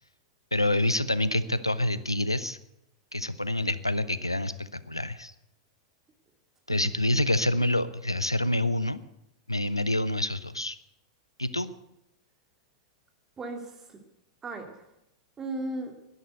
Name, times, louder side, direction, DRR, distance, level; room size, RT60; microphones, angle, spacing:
voice 1, 0.5-2.6 3.1-5.3 6.7-9.0 9.5-10.8 11.4-11.7, left 1 dB, 90° left, 16 dB, 0.7 m, -27 dB
voice 2, 6.7-7.2 13.4-14.0 14.4-14.9 15.4-15.9, right 2 dB, 20° right, 4 dB, 2.5 m, -37 dB
11.5 x 11.0 x 8.0 m, 0.83 s
figure-of-eight pair, 95°, 2 cm